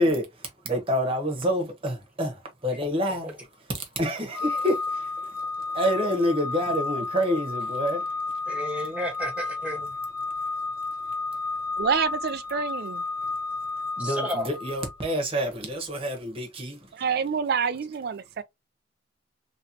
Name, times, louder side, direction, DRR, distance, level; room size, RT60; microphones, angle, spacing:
voice 1, 0.6-3.4 3.7-8.1 10.4-10.5 11.1-11.2 14.0-16.9, equal, 30° right, 1.1 m, -28 dB
Organ, 4.3-15.1, left 3 dB, 20° left, 1.5 m, -32 dB
voice 2, 8.5-9.9 14.0-14.5, equal, 5° right, 1.2 m, -32 dB
voice 3, 11.8-13.0 16.9-18.4, right 6 dB, 55° right, 0.4 m, -27 dB
3.1 x 2.9 x 2.8 m
head